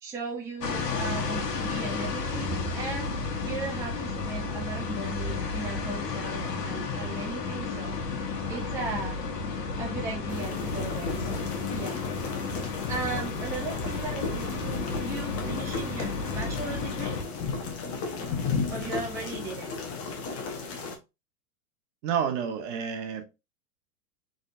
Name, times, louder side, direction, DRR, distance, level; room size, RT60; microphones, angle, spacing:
voice 1, 0.0-3.1 3.4-8.0 8.5-9.2 9.8-12.0 12.6-17.2 18.7-19.7, right 3 dB, 5° right, 0.6 m, -37 dB
sound 1, 0.6-17.2, left 4 dB, 75° left, 1.3 m, -32 dB
sound 2, 10.3-21.0, left 4 dB, 30° left, 1.1 m, -34 dB
voice 2, 22.0-23.2, right 7 dB, 50° right, 1.1 m, -29 dB
3.9 x 3.7 x 2.6 m
hypercardioid pair, 135°, 48 cm